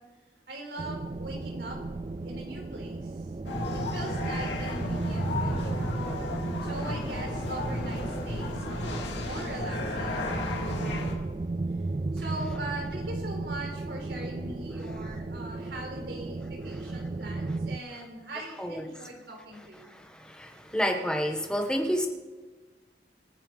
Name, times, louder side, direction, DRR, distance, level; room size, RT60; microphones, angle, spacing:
voice 1, 0.5-1.8 2.2-3.1 3.7-5.9 6.6-11.2 12.1-20.0, right 1 dB, 75° right, 1 dB, 4.3 m, -41 dB
sound 1, 0.8-17.8, right 3 dB, 30° right, 0.4 m, -35 dB
sound 2, 3.5-11.2, left 1 dB, 85° left, 2.7 m, -34 dB
voice 2, 19.8-22.1, equal, 5° left, 4 dB, 1.3 m, -29 dB
26.0 x 9.8 x 4.1 m, 1.3 s
head